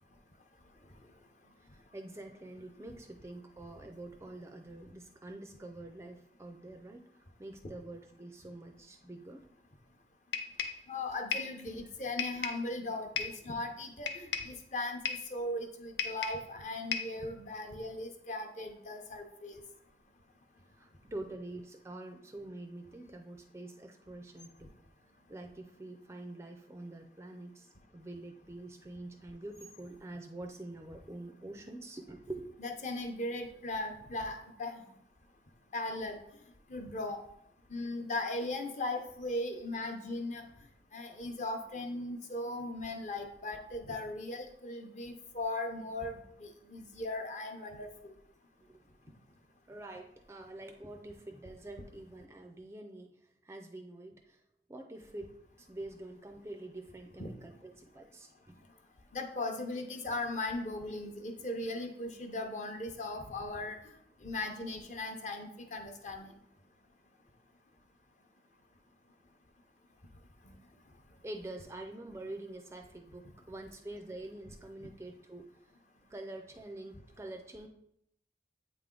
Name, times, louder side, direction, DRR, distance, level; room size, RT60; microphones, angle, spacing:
voice 1, 1.7-9.5 20.8-24.7 25.3-32.6 48.7-48.8 49.7-54.4 54.7-58.6 71.2-75.5 76.1-77.7, right 2 dB, 15° right, 4 dB, 0.4 m, -46 dB
sound 1, 10.3-10.8 11.3-11.6 12.2-12.7 13.2-13.4 14.1-14.6 15.0-15.3 16.0-16.5 16.9-17.2, left 7 dB, 90° left, 0.6 m, -35 dB
voice 2, 10.9-19.6 32.6-34.8 35.7-36.2 36.7-37.2 37.7-40.4 40.9-48.1 57.2-57.3 59.1-63.8 64.2-66.3, left 2 dB, 40° left, 4 dB, 0.7 m, -38 dB
8.2 x 3.4 x 3.8 m, 0.75 s
head